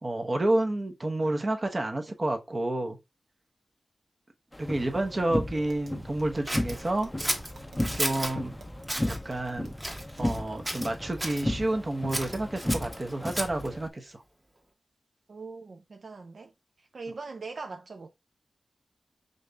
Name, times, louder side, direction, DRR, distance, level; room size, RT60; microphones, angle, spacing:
voice 1, 0.0-3.0 4.6-7.1 7.9-8.6 9.0-9.7 10.2-14.2, right 1 dB, 35° right, 0.9 m, -29 dB
sound 1, 4.5-13.9, left 1 dB, 10° left, 0.5 m, -34 dB
Tap, 5.6-10.5, right 2 dB, 80° right, 1.2 m, -52 dB
Scissors, 6.5-8.4 8.8-9.2 9.8-10.4 10.6-11.4 12.1-13.7, equal, 15° right, 1.1 m, -33 dB
voice 2, 15.3-16.5 16.8-18.1, right 4 dB, 65° right, 0.5 m, -41 dB
5.1 x 3.9 x 2.3 m
wide cardioid pair, 100°, 0 cm